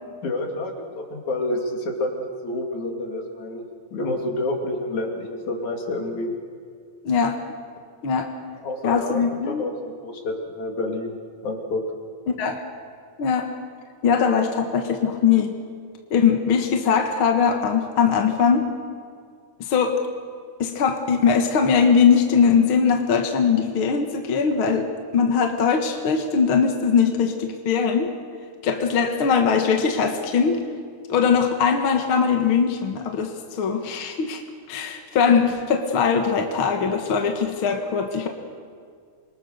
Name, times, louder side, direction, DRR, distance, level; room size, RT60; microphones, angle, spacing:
voice 1, 0.2-3.6 3.9-6.3 8.6-11.1 11.4-11.8, left 2 dB, 70° left, 1 dB, 4.2 m, -28 dB
voice 2, 7.0-7.4 8.0-8.3 8.8-9.7 12.3-12.6 13.2-13.5 14.0-15.5 16.1-18.7 19.6-20.0 20.6-24.9 25.1-28.1 28.6-30.6 31.1-34.4 34.7-38.3, left 6 dB, 50° left, 4 dB, 2.1 m, -21 dB
28.0 x 23.5 x 6.6 m, 2.1 s
omnidirectional pair, 3.5 m